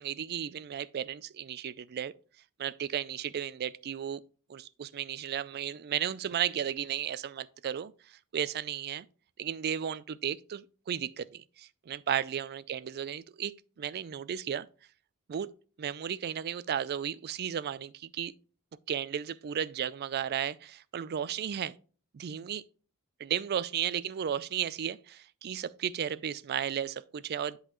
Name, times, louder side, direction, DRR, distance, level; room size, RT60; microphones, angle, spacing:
voice 1, 0.0-2.1 2.6-4.2 4.5-9.1 9.4-14.7 15.3-15.5 15.8-18.3 18.9-21.8 22.1-22.6 23.2-27.6, right 9 dB, 45° right, 0.3 m, -34 dB
10.5 x 4.0 x 3.0 m
head